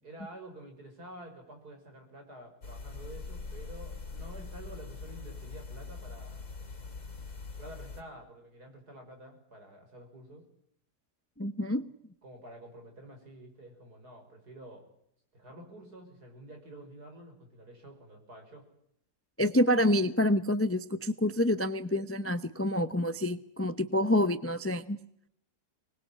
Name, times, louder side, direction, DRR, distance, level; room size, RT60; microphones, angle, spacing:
voice 1, 0.0-6.5 7.6-10.4 12.2-14.9 15.3-18.7, right 1 dB, 70° right, 4 dB, 6.1 m, -49 dB
sound 1, 2.6-8.0, left 4 dB, 55° left, 3.6 m, -43 dB
voice 2, 11.4-11.9 19.4-25.0, left 1 dB, 15° left, 12 dB, 0.5 m, -27 dB
24.5 x 20.5 x 8.6 m, 0.75 s
omnidirectional pair, 1.7 m